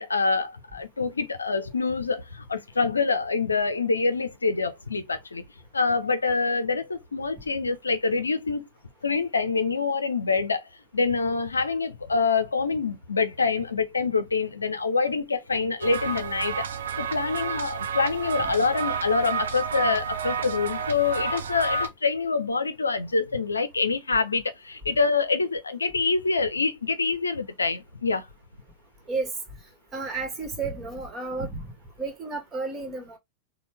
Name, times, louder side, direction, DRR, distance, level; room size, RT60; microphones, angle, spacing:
voice 1, 0.0-5.4 5.7-8.7 9.0-16.6 17.0-28.3, left 4 dB, 75° left, 0.5 m, -26 dB
sound 1, 15.8-21.9, right 5 dB, 65° right, 0.5 m, -30 dB
voice 2, 29.9-31.7 32.0-33.2, right 3 dB, 20° right, 1.4 m, -32 dB
4.2 x 2.2 x 3.4 m
figure-of-eight pair, 90°, 0 cm